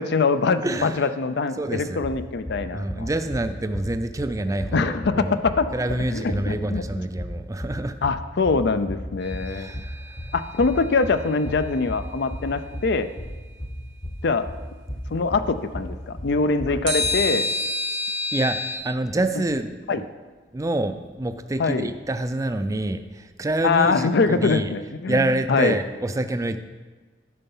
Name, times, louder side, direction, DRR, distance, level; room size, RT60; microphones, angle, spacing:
voice 1, 0.0-3.1 4.7-5.7 6.1-7.0 8.0-9.7 10.3-13.1 14.2-14.5 15.1-17.5 19.9-20.0 21.6-21.9 23.6-25.8, left 4 dB, 60° left, 11 dB, 0.5 m, -23 dB
voice 2, 0.6-1.0 1.6-2.0 2.7-5.4 5.7-8.0 9.5-10.3 18.3-18.6 18.8-20.0 20.5-24.7 25.1-26.6, right 1 dB, 15° right, 9 dB, 0.4 m, -27 dB
sound 1, 2.0-17.4, equal, 15° left, 0.7 m, -35 dB
sound 2, 9.2-10.5 16.9-18.7, left 2 dB, 90° right, 2.5 m, -28 dB
11.0 x 5.5 x 5.5 m, 1.4 s
head